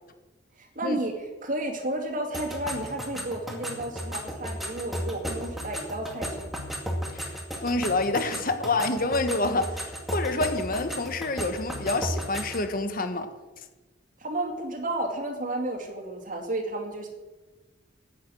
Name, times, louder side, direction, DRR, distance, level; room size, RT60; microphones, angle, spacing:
voice 1, 0.6-6.5 14.2-17.1, right 1 dB, 45° right, 2.4 m, -32 dB
sound 1, 2.3-12.7, equal, ahead, 2.2 m, -35 dB
voice 2, 7.6-13.3, left 2 dB, 50° left, 1.4 m, -27 dB
14.0 x 9.6 x 6.3 m
head